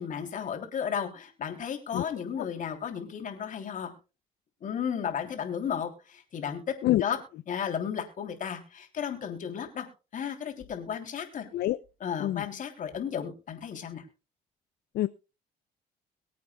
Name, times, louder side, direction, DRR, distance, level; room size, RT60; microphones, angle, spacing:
voice 1, 0.0-3.9 4.6-6.6 7.0-7.2 7.5-9.9 10.1-11.4 12.0-14.0, left 8 dB, 50° left, 4 dB, 3.1 m, -34 dB
voice 2, 1.9-2.0 2.4-2.5 6.8-7.0 11.5-11.8 12.2-12.4 14.9-15.1, left 15 dB, 70° left, 13 dB, 0.5 m, -26 dB
23.5 x 8.5 x 2.3 m, 0.31 s
cardioid pair, 110°, 17 cm